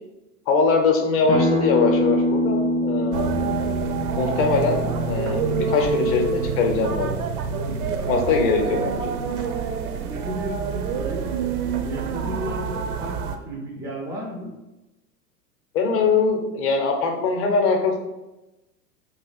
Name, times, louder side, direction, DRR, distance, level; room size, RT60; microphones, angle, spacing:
voice 1, 0.5-3.3 4.2-7.2 8.1-9.1 15.7-18.0, left 4 dB, 30° left, 3 dB, 0.6 m, -22 dB
Acoustic guitar, 1.3-6.5, left 1 dB, 85° right, 1.0 m, -25 dB
sound 1, 3.1-13.4, right 5 dB, 65° right, 0.6 m, -27 dB
voice 2, 8.6-9.1 10.1-11.3 11.8-14.5, right 1 dB, 10° right, -2 dB, 0.3 m, -33 dB
2.9 x 2.6 x 3.9 m, 1.0 s
figure-of-eight pair, 95°, 49 cm